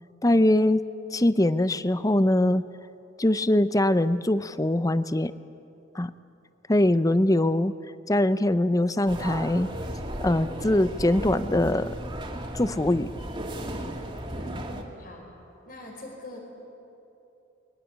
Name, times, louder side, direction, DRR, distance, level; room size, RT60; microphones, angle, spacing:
voice 1, 0.2-0.8 1.1-2.6 3.2-5.3 5.9-6.1 6.7-7.7 8.1-9.7 10.2-11.9 12.5-13.1, left 1 dB, 20° left, 14 dB, 0.6 m, -22 dB
sound 1, 9.1-14.8, right 1 dB, 25° right, 2.6 m, -35 dB
voice 2, 14.4-15.3 15.7-16.4, left 2 dB, 50° left, 1 dB, 5.3 m, -43 dB
29.0 x 22.5 x 8.5 m, 2.9 s
head